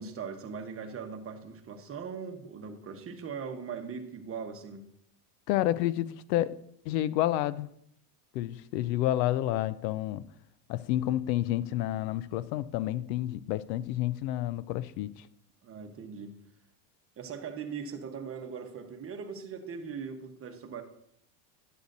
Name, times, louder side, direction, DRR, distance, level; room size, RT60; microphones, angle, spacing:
voice 1, 0.0-4.8 15.6-16.3 17.2-20.8, right 6 dB, 25° right, 1.1 m, -40 dB
voice 2, 5.5-6.5 6.9-7.7 8.3-10.2 10.7-15.3, left 14 dB, 85° left, 0.6 m, -29 dB
11.5 x 8.2 x 2.6 m
supercardioid pair, 125°, 49 cm